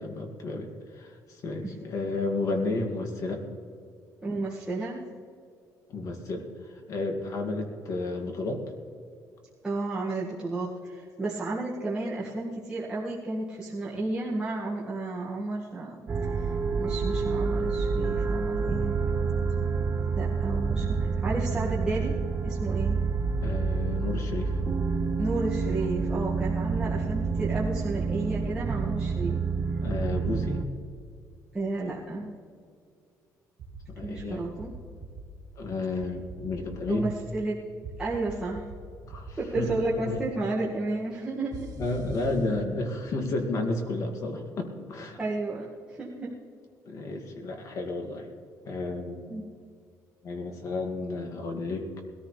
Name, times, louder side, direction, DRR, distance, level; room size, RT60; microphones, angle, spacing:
voice 1, 0.0-3.4 5.9-8.6 23.4-24.6 29.8-30.7 33.9-34.5 35.6-37.1 39.0-40.2 41.8-45.2 46.9-48.3 48.6-49.3 50.2-51.9, left 2 dB, 55° left, 4 dB, 2.2 m, -32 dB
voice 2, 4.2-5.1 9.6-16.5 16.8-18.9 20.2-22.2 22.4-23.0 25.2-29.4 31.5-32.3 34.0-34.7 36.9-37.6 38.0-38.7 39.4-41.5 45.2-46.3 49.3-49.5, right 2 dB, 15° right, -7 dB, 1.9 m, -32 dB
sound 1, 16.1-30.6, right 4 dB, 30° right, 0.7 m, -28 dB
sound 2, 33.6-34.3 34.6-35.2 36.0-36.9 37.8-38.8 39.1-39.8 41.5-42.3, right 4 dB, 60° right, 1.9 m, -41 dB
20.5 x 14.0 x 3.3 m, 2.2 s
cardioid pair, 130°, 7 cm